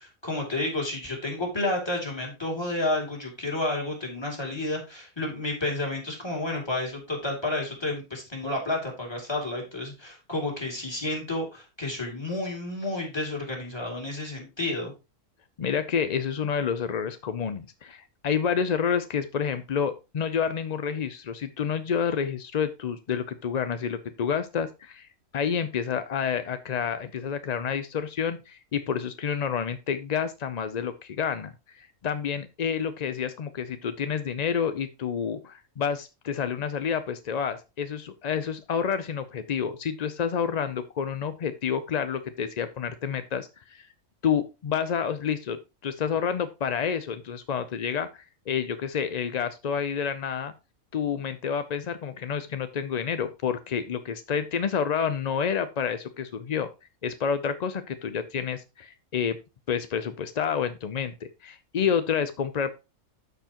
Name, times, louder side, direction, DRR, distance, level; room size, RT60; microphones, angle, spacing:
voice 1, 0.0-14.9, left 2 dB, 20° left, -1 dB, 2.6 m, -31 dB
voice 2, 15.6-43.9 44.2-48.1 48.5-50.5 50.9-56.7 57.0-59.4 59.7-62.7, left 7 dB, 65° left, 11 dB, 0.4 m, -29 dB
13.0 x 4.6 x 2.9 m, 0.27 s
omnidirectional pair, 1.4 m